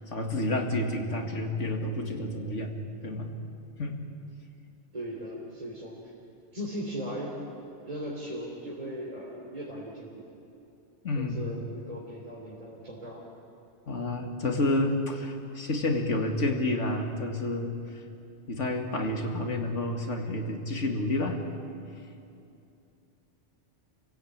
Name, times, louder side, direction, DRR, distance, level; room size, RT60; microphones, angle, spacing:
voice 1, 0.1-3.3 3.8-4.0 11.0-11.5 13.9-17.8 18.5-21.4, left 2 dB, 80° left, 3 dB, 2.4 m, -29 dB
voice 2, 4.9-6.0 6.5-7.4 7.8-10.3 11.1-13.2, equal, 30° right, -4 dB, 3.3 m, -38 dB
29.5 x 16.5 x 8.8 m, 2.7 s
omnidirectional pair, 1.2 m